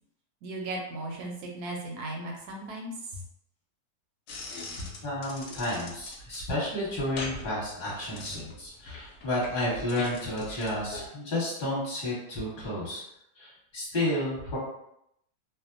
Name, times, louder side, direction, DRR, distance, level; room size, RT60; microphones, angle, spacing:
voice 1, 0.4-3.2, right 2 dB, 70° right, 0 dB, 1.0 m, -36 dB
sound 1, 4.3-11.1, left 2 dB, 75° left, 0.7 m, -42 dB
voice 2, 5.0-13.0 13.4-14.6, left 1 dB, 35° left, -7 dB, 1.1 m, -31 dB
2.8 x 2.1 x 2.5 m, 0.77 s
omnidirectional pair, 1.9 m